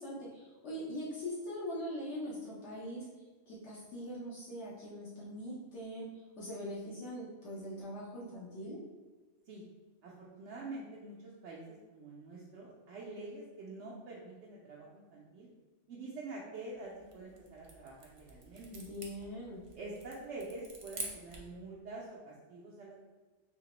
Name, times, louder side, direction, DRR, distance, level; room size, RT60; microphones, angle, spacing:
voice 1, 0.0-3.1 3.5-8.8 18.7-19.6, equal, 75° left, -8 dB, 1.2 m, -42 dB
voice 2, 10.0-15.5 15.9-18.7 19.8-22.9, right 2 dB, 80° right, -5 dB, 0.9 m, -46 dB
sound 1, 16.9-21.6, right 3 dB, 45° right, 0.4 m, -48 dB
3.5 x 2.8 x 3.0 m, 1.2 s
omnidirectional pair, 1.2 m